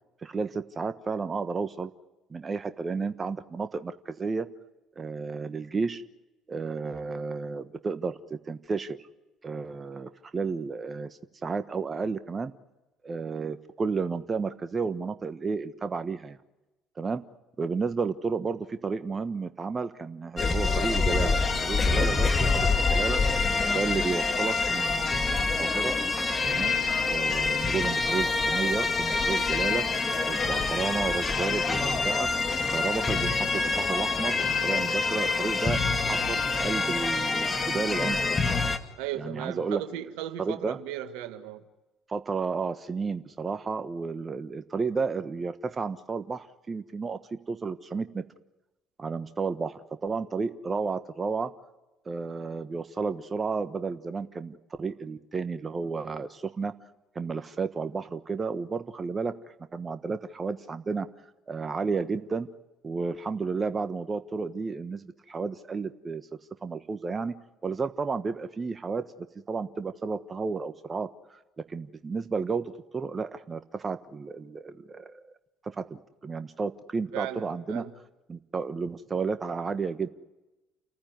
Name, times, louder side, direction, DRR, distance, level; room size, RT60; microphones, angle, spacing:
voice 1, 0.2-1.9 2.3-4.5 5.0-6.0 6.5-9.0 9.4-12.5 13.0-16.4 17.0-17.2 17.6-23.2 23.7-26.0 26.5-26.8 27.0-29.9 30.3-32.3 32.7-35.8 36.1-38.3 39.1-39.8 40.4-40.8 42.1-47.2 47.5-48.2 49.0-51.5 52.0-56.7 57.1-59.3 59.7-61.1 61.5-62.5 62.8-66.2 66.6-67.3 67.6-69.1 69.5-75.3 75.6-77.8 78.3-80.1, right 4 dB, 35° right, 1.2 m, -32 dB
sound 1, 20.4-38.8, left 4 dB, 35° left, 2.4 m, -26 dB
voice 2, 39.0-41.6 77.1-77.9, right 11 dB, 70° right, 1.6 m, -36 dB
29.5 x 14.5 x 9.6 m
hypercardioid pair, 55°, 0 cm